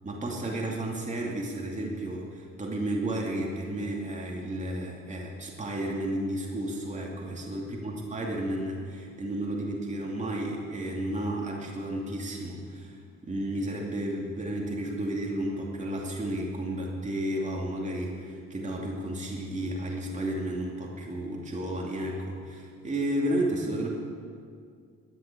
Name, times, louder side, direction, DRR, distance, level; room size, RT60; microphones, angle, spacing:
voice 1, 0.0-23.9, right 1 dB, 25° right, -2 dB, 2.6 m, -32 dB
13.5 x 10.0 x 8.3 m, 2.2 s
cardioid pair, 90°, 30 cm